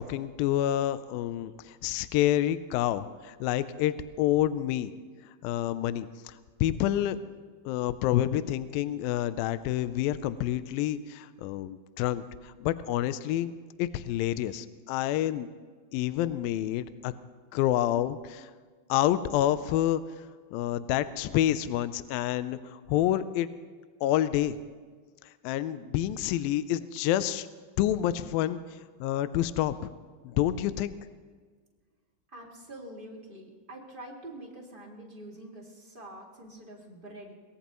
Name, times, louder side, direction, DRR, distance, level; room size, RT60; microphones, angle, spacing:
voice 1, 0.0-4.9 5.4-6.3 6.6-7.2 7.7-13.5 13.8-15.5 15.9-17.1 17.5-18.5 18.9-20.0 20.5-23.5 24.0-24.6 25.4-27.5 27.8-28.6 29.0-29.9 30.2-30.9, left 12 dB, 80° left, 13 dB, 2.2 m, -28 dB
voice 2, 32.3-37.3, right 1 dB, 20° right, -3 dB, 1.3 m, -45 dB
23.0 x 19.5 x 3.0 m, 1.5 s
omnidirectional pair, 4.6 m